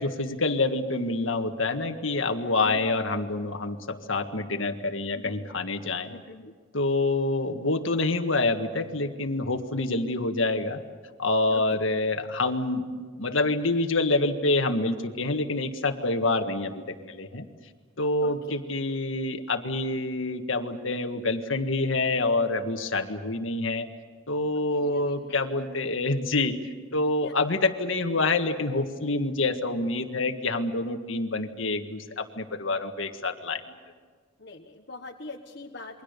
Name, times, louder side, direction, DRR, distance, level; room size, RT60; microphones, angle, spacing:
voice 1, 0.0-6.1 6.7-10.8 11.2-12.9 13.2-17.5 18.0-23.9 24.3-26.6 26.9-33.6, left 2 dB, 75° left, 7 dB, 1.7 m, -27 dB
voice 2, 2.6-3.0 5.1-5.5 6.1-6.5 11.5-11.6 18.2-18.6 24.7-25.4 27.2-27.3 34.4-36.0, left 3 dB, 55° left, 0 dB, 1.3 m, -43 dB
28.5 x 23.5 x 6.8 m, 1.5 s
head